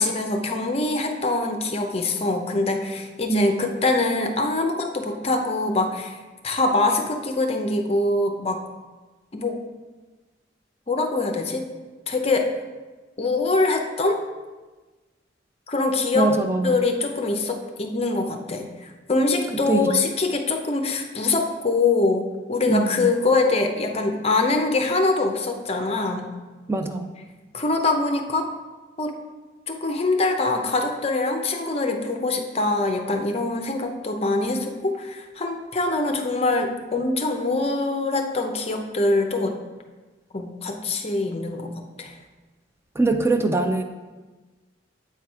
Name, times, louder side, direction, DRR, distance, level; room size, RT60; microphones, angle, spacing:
voice 1, 0.0-6.2 6.4-8.6 9.3-9.6 10.9-11.6 12.1-12.5 13.2-14.2 15.7-16.3 16.6-26.3 27.5-28.5 29.0-29.1 29.7-39.5 40.3-41.7 42.0-42.1, left 3 dB, 35° left, 4 dB, 0.7 m, -24 dB
voice 2, 16.1-16.8 19.7-19.9 22.7-23.1 26.7-27.1 43.0-43.8, right 3 dB, 15° right, 6 dB, 0.3 m, -22 dB
8.1 x 4.6 x 4.6 m, 1.3 s
head